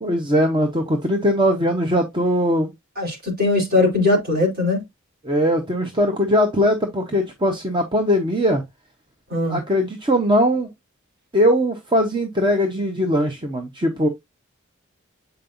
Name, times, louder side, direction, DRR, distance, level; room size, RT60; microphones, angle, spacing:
voice 1, 0.0-2.7 5.2-8.6 9.4-10.7 11.3-14.1, equal, 25° right, 0.8 m, -20 dB
voice 2, 3.0-4.8 9.3-9.6, left 2 dB, 45° right, 4.0 m, -20 dB
7.9 x 5.3 x 2.6 m
head